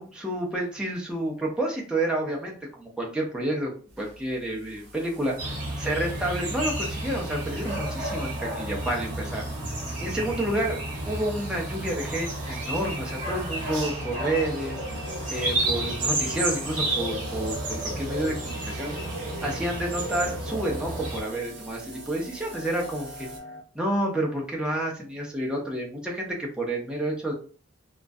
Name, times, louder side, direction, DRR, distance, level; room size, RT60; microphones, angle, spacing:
voice 1, 0.0-3.7 4.0-5.3 5.8-9.5 10.0-10.8 11.1-14.8 15.3-18.9 19.4-23.3 23.7-27.3, right 1 dB, 5° right, -2 dB, 0.5 m, -29 dB
sound 1, 3.9-23.4, right 3 dB, 70° right, 0.7 m, -47 dB
sound 2, 5.4-21.2, right 1 dB, 40° right, 0.9 m, -31 dB
sound 3, 14.0-23.6, equal, 75° left, 0.6 m, -45 dB
2.3 x 2.1 x 2.5 m, 0.41 s
head